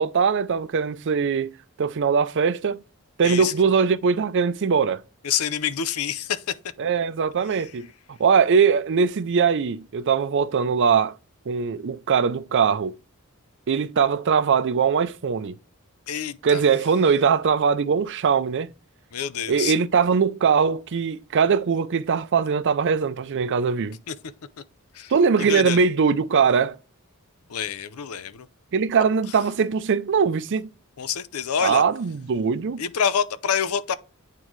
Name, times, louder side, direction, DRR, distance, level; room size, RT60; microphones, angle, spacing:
voice 1, 0.0-2.8 3.2-5.0 6.8-11.2 11.5-13.0 13.7-15.6 16.4-18.7 19.5-24.0 25.1-26.8 28.7-30.7 31.6-32.8, right 6 dB, 55° right, 0.5 m, -21 dB
voice 2, 5.2-6.6 16.1-16.6 19.1-19.7 24.1-24.2 24.9-25.1 25.4-25.8 27.5-28.5 31.0-31.8 32.8-33.9, left 8 dB, 85° left, 0.6 m, -27 dB
9.1 x 3.7 x 3.1 m
head